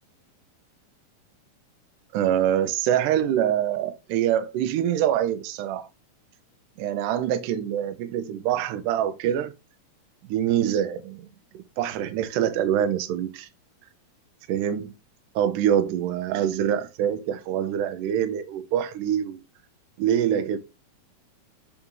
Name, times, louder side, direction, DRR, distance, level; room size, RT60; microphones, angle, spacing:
voice 1, 2.1-5.9 6.8-9.5 10.3-11.3 11.5-13.5 14.5-14.9 15.4-19.4 20.0-20.6, right 10 dB, 80° right, 2.0 m, -25 dB
8.8 x 3.1 x 3.6 m
omnidirectional pair, 4.1 m